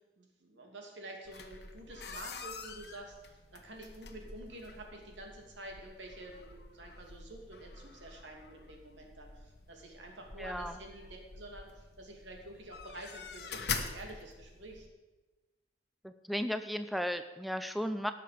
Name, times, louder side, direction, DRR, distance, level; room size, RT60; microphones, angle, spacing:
voice 1, 0.2-11.1 11.3-14.9, right 1 dB, 90° right, 1 dB, 2.6 m, -49 dB
sound 1, 1.2-14.9, left 5 dB, 60° left, 1.2 m, -45 dB
voice 2, 10.4-10.8 16.0-18.1, equal, ahead, 9 dB, 0.4 m, -35 dB
17.5 x 6.8 x 5.1 m, 1.2 s
head